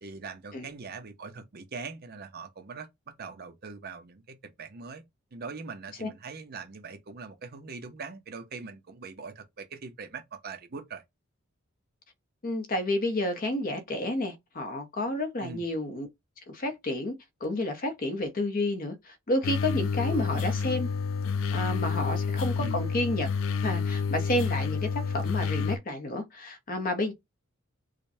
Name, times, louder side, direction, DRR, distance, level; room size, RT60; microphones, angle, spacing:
voice 1, 0.0-5.0 5.3-11.0 15.4-15.6 20.1-20.6 22.6-22.8, right 4 dB, 50° right, 0.7 m, -42 dB
voice 2, 12.4-16.1 16.5-17.1 17.4-20.9 21.5-23.3 23.6-27.1, left 1 dB, 45° left, 0.8 m, -30 dB
sound 1, 19.4-25.8, left 5 dB, 70° left, 0.3 m, -29 dB
4.9 x 2.2 x 2.7 m
head